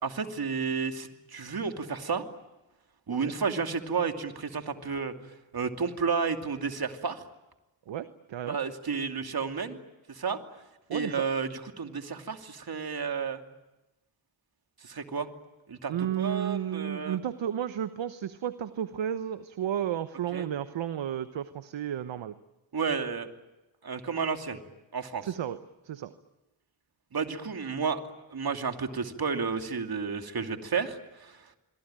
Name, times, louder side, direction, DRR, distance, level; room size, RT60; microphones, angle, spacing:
voice 1, 0.0-2.2 3.1-5.1 5.5-7.2 8.5-9.8 10.1-10.4 10.9-13.4 14.8-15.3 15.7-17.2 20.3-20.4 22.7-23.3 23.8-24.6 24.9-25.2 27.1-28.0 28.3-31.6, right 5 dB, 50° right, 5 dB, 2.8 m, -31 dB
voice 2, 7.9-8.6 10.9-11.1 15.9-22.3 25.2-25.6 25.8-26.1, right 10 dB, 65° right, 12 dB, 1.1 m, -32 dB
26.0 x 23.5 x 9.0 m, 1.0 s
supercardioid pair, 50°, 48 cm